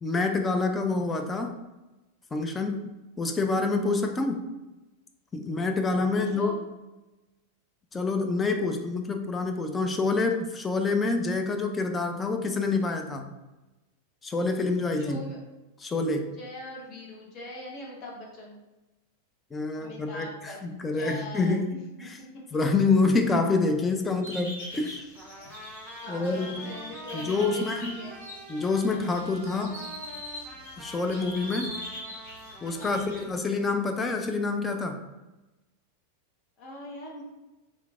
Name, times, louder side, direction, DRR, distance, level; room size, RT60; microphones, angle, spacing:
voice 1, 0.0-1.6 2.3-2.9 3.2-4.4 5.3-6.7 7.9-13.3 14.2-15.2 15.8-16.3 19.5-21.8 22.5-25.0 26.1-26.8 27.1-28.1 28.5-29.8 30.8-31.8 32.6-35.0, left 3 dB, 15° left, 4 dB, 0.3 m, -27 dB
voice 2, 6.1-6.5 15.0-15.4 16.4-18.6 19.7-20.6 20.9-21.8 22.2-22.3 26.0-28.2 32.8-33.1 36.6-37.2, left 2 dB, 35° left, -3 dB, 1.0 m, -42 dB
sound 1, 24.2-33.2, left 1 dB, 65° left, 1.2 m, -42 dB
Trumpet, 25.1-33.4, right 2 dB, 10° right, 0.7 m, -46 dB
3.1 x 3.0 x 2.4 m, 1.0 s
figure-of-eight pair, 90°, 0 cm